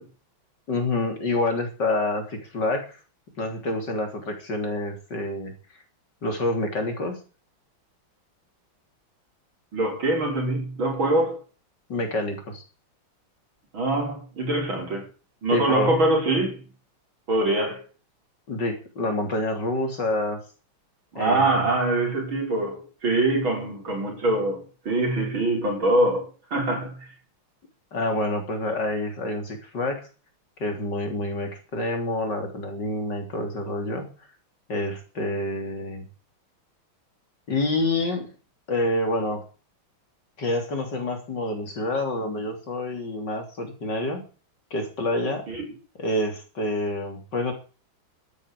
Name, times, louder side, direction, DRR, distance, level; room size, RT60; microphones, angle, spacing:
voice 1, 0.7-3.0 3.4-5.5 6.2-7.2 11.9-12.6 15.5-15.9 18.5-20.4 21.2-21.5 27.9-30.1 30.6-34.1 34.7-36.0 37.5-38.3 38.7-39.4 40.4-44.2 44.7-45.5 46.0-47.5, left 2 dB, 55° left, 4.1 m, -27 dB
voice 2, 9.7-11.4 13.7-15.1 15.4-16.6 17.3-17.8 21.1-27.1 45.5-45.7, right 2 dB, 75° right, 6.6 m, -24 dB
13.0 x 9.5 x 8.4 m
omnidirectional pair, 2.2 m